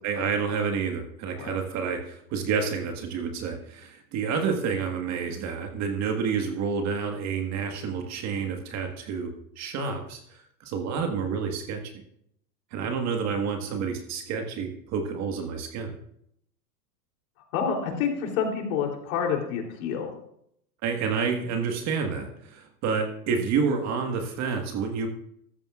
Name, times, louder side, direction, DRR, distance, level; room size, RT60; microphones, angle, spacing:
voice 1, 0.0-11.8 12.7-15.9 20.8-25.1, right 5 dB, 35° right, 4 dB, 1.6 m, -29 dB
voice 2, 17.5-20.1, left 6 dB, 60° left, 2 dB, 3.4 m, -28 dB
14.5 x 14.0 x 2.5 m, 0.72 s
hypercardioid pair, 125°, 47 cm